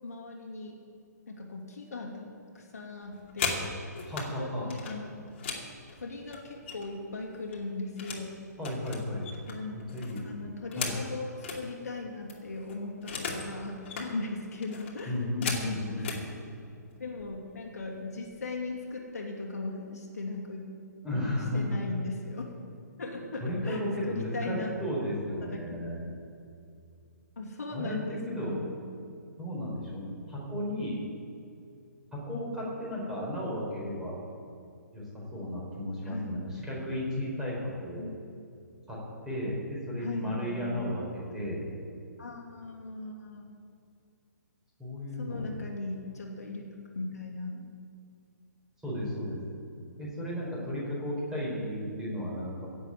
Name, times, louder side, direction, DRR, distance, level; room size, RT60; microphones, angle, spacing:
voice 1, 0.0-0.8 1.3-2.3 2.5-3.6 4.4-5.1 5.4-5.5 6.0-8.4 9.5-9.8 10.2-16.3 17.0-20.7 21.5-22.4 23.0-24.7 25.4-25.8 27.4-28.7 36.0-36.4 38.0-38.4 40.0-40.8 42.2-43.5 45.2-46.6 46.9-47.6, left 3 dB, 60° left, 0 dB, 2.7 m, -38 dB
sound 1, 3.0-4.3 4.7-7.0 7.3-8.3 8.6-11.6 12.0-12.1 12.3-13.5 13.8-14.1 14.6-16.2 17.1-17.2 17.6-17.9 18.2-18.7, left 5 dB, 40° left, 2.6 m, -37 dB
voice 2, 4.1-4.7 8.6-9.3 9.7-10.5 10.7-10.9 15.1-16.2 21.0-21.8 23.4-26.0 27.7-28.6 28.9-29.0 29.4-31.0 32.1-34.1 34.9-38.1 38.9-39.0 39.2-41.6 44.8-45.5 48.8-49.6 50.0-52.7, left 1 dB, 5° right, -6 dB, 4.5 m, -34 dB
16.5 x 7.5 x 8.9 m, 2.5 s
figure-of-eight pair, 130°, 10 cm